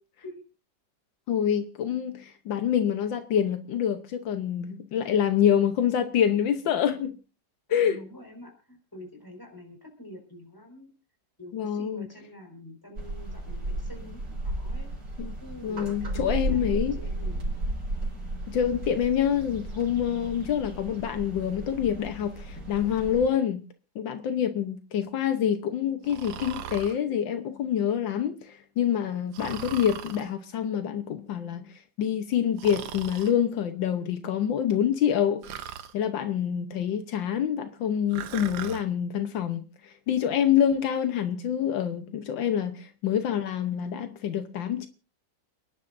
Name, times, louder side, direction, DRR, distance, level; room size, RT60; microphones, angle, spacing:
voice 1, 1.3-7.2 7.7-8.0 11.5-12.1 15.2-15.3 15.6-17.0 18.5-23.6 23.9-35.5 35.9-44.9, left 9 dB, 80° left, 1.6 m, -26 dB
voice 2, 7.7-10.9 11.4-14.9 15.4-17.5, left 1 dB, 10° left, 4.9 m, -46 dB
sound 1, 13.0-23.3, right 2 dB, 60° right, 4.9 m, -34 dB
Breathing, 26.0-27.0 29.3-30.3 32.6-33.3 35.4-35.9 38.1-38.8, right 9 dB, 80° right, 1.6 m, -38 dB
29.5 x 11.0 x 2.6 m
omnidirectional pair, 2.0 m